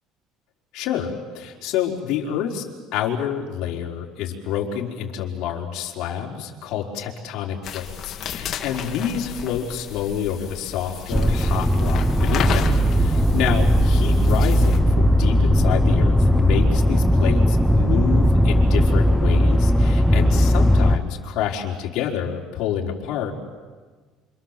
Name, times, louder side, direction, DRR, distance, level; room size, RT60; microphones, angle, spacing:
voice 1, 0.7-2.6 2.9-23.4, left 8 dB, 60° left, -1 dB, 4.4 m, -28 dB
sound 1, 7.6-14.8, left 8 dB, 40° left, 2.4 m, -33 dB
sound 2, 11.1-21.0, equal, ahead, 0.9 m, -18 dB
28.5 x 28.0 x 7.6 m, 1.4 s
cardioid pair, 155°, 0 cm